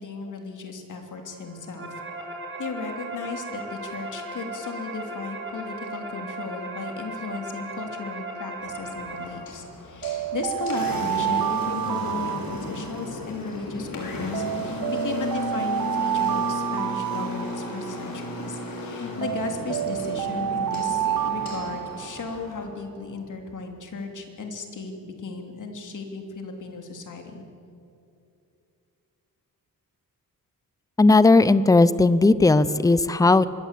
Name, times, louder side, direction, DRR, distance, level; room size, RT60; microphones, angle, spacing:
voice 1, 0.0-1.9 2.6-27.4, left 4 dB, 60° left, 3 dB, 3.4 m, -35 dB
sound 1, 1.4-9.3, right 2 dB, 35° right, 5.3 m, -37 dB
Engine, 8.6-22.6, left 3 dB, 90° left, 5.6 m, -35 dB
sound 2, 10.0-13.2 14.3-18.1 19.2-22.4, right 11 dB, 80° right, 0.6 m, -29 dB
voice 2, 31.0-33.5, left 3 dB, 10° left, 16 dB, 0.6 m, -17 dB
25.5 x 22.0 x 8.5 m, 2.6 s
wide cardioid pair, 155°, 34 cm